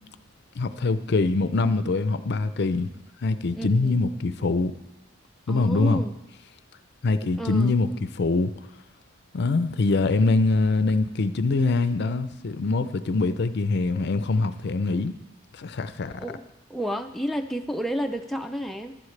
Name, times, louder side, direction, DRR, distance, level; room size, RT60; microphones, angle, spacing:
voice 1, 0.6-2.9 3.2-4.7 5.5-6.0 7.0-7.9 8.2-8.5 9.3-15.1 15.5-16.1, left 3 dB, 60° left, 0.5 m, -23 dB
voice 2, 3.6-4.0 5.5-6.1 7.4-7.8 16.2-16.4 16.7-19.0, equal, ahead, 0.4 m, -31 dB
14.5 x 11.0 x 3.3 m
head